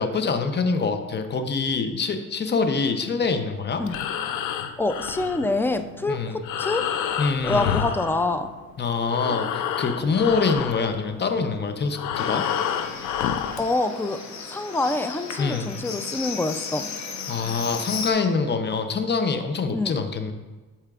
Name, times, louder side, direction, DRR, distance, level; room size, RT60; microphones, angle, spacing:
voice 1, 0.0-3.8 6.1-6.4 7.2-7.8 8.8-12.4 15.4-15.7 17.3-20.3, left 4 dB, 35° left, 7 dB, 0.7 m, -25 dB
Breathing, 3.7-8.7 9.0-13.7, left 9 dB, 85° left, 0.5 m, -29 dB
voice 2, 4.8-6.9 7.4-8.5 13.6-14.2 14.5-16.9 19.7-20.0, left 2 dB, 5° left, 9 dB, 0.4 m, -26 dB
Livestock farm animals working animals, 12.1-18.1, left 5 dB, 65° left, 1.0 m, -35 dB
11.5 x 4.3 x 2.4 m, 1.2 s
cardioid pair, 90°, 30 cm